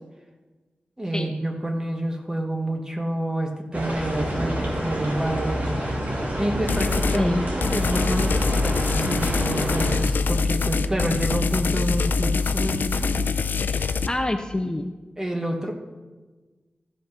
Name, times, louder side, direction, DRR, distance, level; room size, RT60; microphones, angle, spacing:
voice 1, 1.0-5.6 6.4-13.1 15.2-15.7, right 1 dB, 20° right, 2 dB, 1.4 m, -28 dB
sound 1, 3.7-10.0, equal, 55° right, 2.4 m, -28 dB
sound 2, 6.7-7.2 7.6-14.1, left 4 dB, 85° left, 0.5 m, -24 dB
voice 2, 7.1-7.5 13.7-14.9, left 2 dB, 25° left, 7 dB, 0.5 m, -27 dB
14.0 x 5.3 x 5.9 m, 1.3 s
wide cardioid pair, 95°, 3 cm